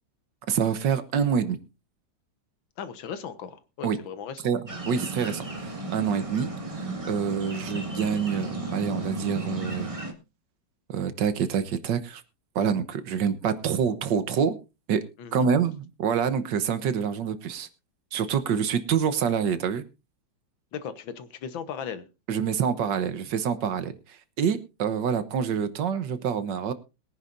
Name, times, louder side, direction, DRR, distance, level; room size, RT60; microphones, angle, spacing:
voice 1, 0.5-1.6 3.8-4.0 4.4-4.6 4.9-6.5 6.8-9.9 10.9-12.2 12.5-14.6 14.9-15.0 15.3-17.7 18.1-19.8 22.3-23.9 24.4-26.7, right 7 dB, 70° right, 12 dB, 1.6 m, -26 dB
voice 2, 2.8-4.5 15.2-15.5 20.7-22.0, left 7 dB, 80° left, 12 dB, 1.9 m, -37 dB
sound 1, 4.7-10.1, right 2 dB, 20° right, 1.6 m, -34 dB
22.0 x 9.8 x 2.6 m, 0.27 s
omnidirectional pair, 2.1 m